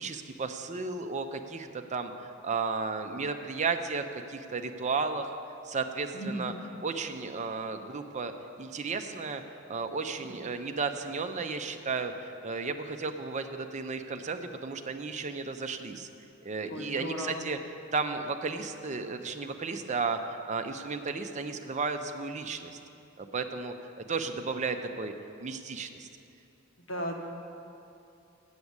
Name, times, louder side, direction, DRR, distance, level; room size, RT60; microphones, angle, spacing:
voice 1, 0.0-5.4 5.6-6.5 6.8-8.3 8.6-9.4 9.7-16.1 16.4-17.6 17.9-22.8 23.2-23.7 24.1-25.1 25.4-26.1, right 4 dB, 35° right, 7 dB, 0.6 m, -34 dB
voice 2, 6.1-6.5 10.3-10.5 16.7-17.4 26.9-27.1, equal, 80° left, 2 dB, 1.2 m, -36 dB
8.4 x 7.2 x 8.0 m, 2.7 s
head